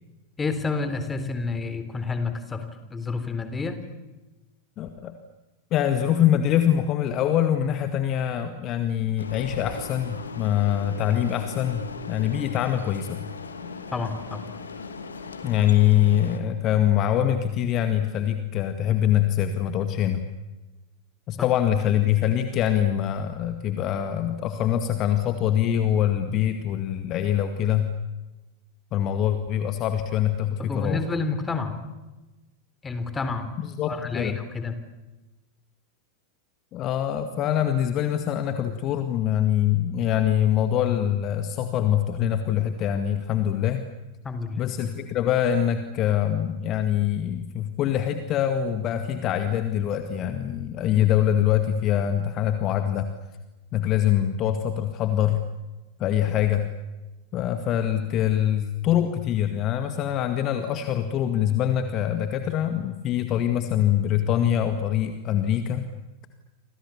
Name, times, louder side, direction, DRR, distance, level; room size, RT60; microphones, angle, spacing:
voice 1, 0.4-3.8 13.9-14.5 30.6-31.8 32.8-33.5 33.9-34.8 44.2-44.6, left 4 dB, 15° left, 10 dB, 3.6 m, -29 dB
voice 2, 4.8-5.1 5.7-13.3 15.4-20.2 21.3-27.9 28.9-31.0 33.6-34.4 36.7-43.9 44.6-53.1 53.7-55.4 56.0-56.7 57.3-65.9, left 10 dB, 35° left, 8 dB, 2.0 m, -24 dB
sound 1, 9.2-16.4, left 5 dB, 70° left, 2.6 m, -38 dB
30.0 x 26.0 x 7.2 m, 1.1 s
figure-of-eight pair, 90°, 0 cm